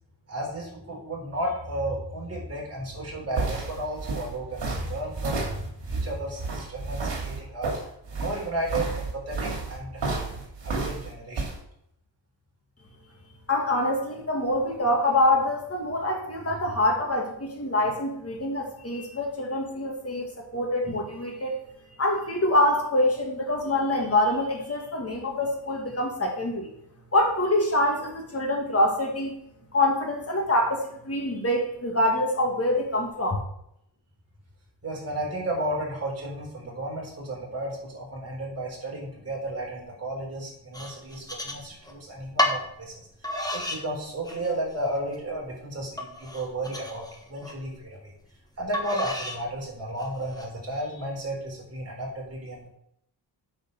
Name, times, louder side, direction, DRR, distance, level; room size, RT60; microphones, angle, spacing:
voice 1, 0.3-7.7 8.2-10.1 10.4-11.5 16.5-16.6 34.8-48.1 48.6-52.7, right 1 dB, 35° right, -3 dB, 4.1 m, -33 dB
sound 1, 2.9-11.6, right 3 dB, 70° right, 2.8 m, -31 dB
voice 2, 13.5-21.5 22.0-26.7 27.1-29.3 29.7-33.4, left 1 dB, 30° left, 0 dB, 2.5 m, -25 dB
sound 2, 40.7-41.9 42.4-42.6 43.2-43.8 44.2-44.8 45.2-45.3 46.0-47.6 48.7-49.4 50.0-50.5, left 1 dB, 10° left, 1.3 m, -31 dB
9.0 x 5.2 x 6.4 m, 0.74 s
wide cardioid pair, 140°, 44 cm